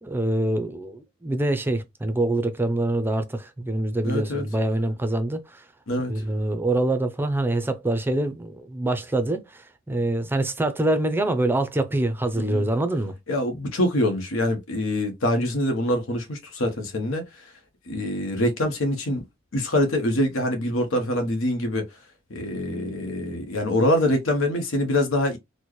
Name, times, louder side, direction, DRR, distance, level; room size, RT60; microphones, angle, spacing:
voice 1, 0.0-5.6 6.1-13.2, right 1 dB, 10° right, 0.4 m, -25 dB
voice 2, 4.0-4.4 5.9-6.1 12.3-12.6 13.3-17.2 17.9-19.2 19.5-21.8 22.3-25.4, left 1 dB, 85° left, 0.9 m, -24 dB
4.3 x 2.1 x 3.0 m
head